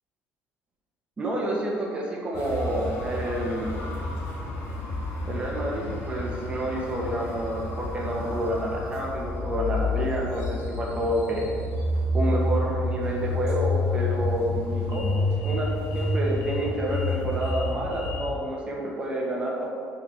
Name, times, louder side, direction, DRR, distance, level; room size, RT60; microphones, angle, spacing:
voice 1, 1.2-3.7 5.3-11.5 12.1-15.7 15.9-19.7, right 1 dB, 20° right, -2 dB, 1.8 m, -29 dB
sound 1, 2.3-18.3, left 2 dB, 65° left, 1.7 m, -29 dB
7.6 x 4.8 x 5.9 m, 2.2 s
cardioid pair, 130°, 5 cm